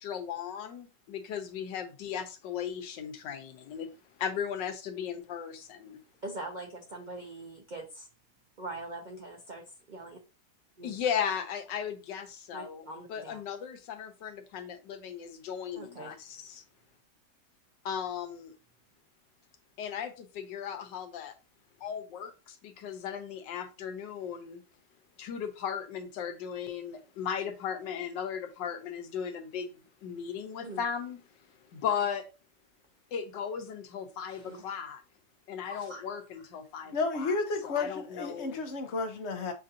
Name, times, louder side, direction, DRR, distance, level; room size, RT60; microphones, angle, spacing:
voice 1, 0.0-3.9 4.2-6.0 10.8-16.6 17.8-18.5 19.8-21.3 21.8-24.6 25.2-31.2 31.7-32.3 33.1-35.0 35.5-37.4 37.6-38.6, left 8 dB, 85° left, 1.4 m, -36 dB
voice 2, 6.2-8.1 8.6-10.2 10.8-10.9 12.5-13.4 15.7-16.1 30.6-30.8 34.3-34.7 35.7-36.0 36.8-36.9, right 2 dB, 70° right, 0.4 m, -42 dB
voice 3, 36.9-39.5, left 3 dB, 55° left, 0.8 m, -32 dB
7.2 x 2.5 x 2.7 m
omnidirectional pair, 1.9 m